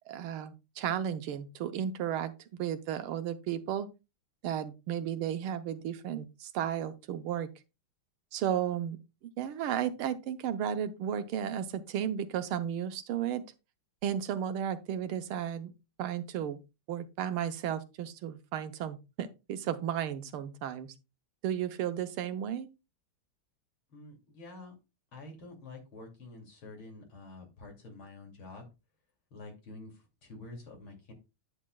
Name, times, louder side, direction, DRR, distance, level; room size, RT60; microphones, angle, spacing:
voice 1, 0.1-2.3 2.6-3.9 4.4-7.5 8.3-9.0 9.4-13.4 14.0-16.6 16.9-20.9 21.4-22.7, right 9 dB, 80° right, 1.7 m, -34 dB
voice 2, 23.9-24.7 25.1-28.7 29.3-31.1, left 2 dB, 75° left, 3.3 m, -48 dB
9.8 x 8.3 x 2.3 m
omnidirectional pair, 2.3 m